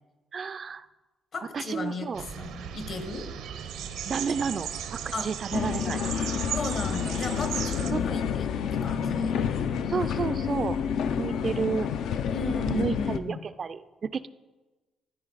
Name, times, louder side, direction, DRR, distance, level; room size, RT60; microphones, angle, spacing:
voice 1, 0.3-0.9 1.5-2.2 4.0-6.0 7.9-8.2 9.9-10.8 11.2-11.9 12.8-14.3, right 6 dB, 45° right, 13 dB, 0.3 m, -31 dB
voice 2, 1.3-2.1 2.3-3.3 5.1-5.3 6.5-9.4 12.3-13.4, left 2 dB, 55° left, 8 dB, 1.1 m, -35 dB
sound 1, 2.1-7.9, right 8 dB, 90° right, 0.7 m, -36 dB
sound 2, 5.5-13.2, left 7 dB, 75° left, 0.4 m, -29 dB
13.0 x 4.7 x 4.0 m, 1.2 s
cardioid pair, 85°, 0 cm